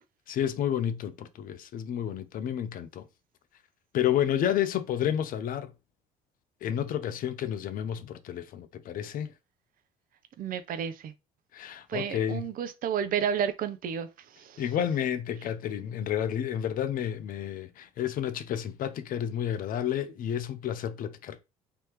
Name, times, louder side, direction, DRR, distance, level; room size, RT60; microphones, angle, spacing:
voice 1, 0.3-3.1 3.9-5.7 6.6-9.3 11.5-12.4 14.6-21.4, left 10 dB, 55° left, 0.5 m, -30 dB
voice 2, 10.4-11.1 11.9-14.6, right 8 dB, 55° right, 0.7 m, -31 dB
3.4 x 2.9 x 3.0 m
hypercardioid pair, 60°, 17 cm